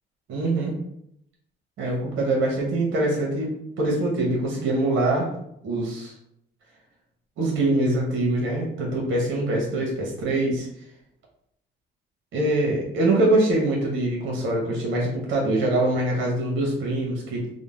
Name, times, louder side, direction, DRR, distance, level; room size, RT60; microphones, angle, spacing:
voice 1, 0.3-0.7 1.8-3.5 3.8-5.3 5.6-6.1 7.4-10.7 12.3-17.4, right 2 dB, 75° right, -2 dB, 0.7 m, -24 dB
2.6 x 2.0 x 3.0 m, 0.75 s
cardioid pair, 90°, 20 cm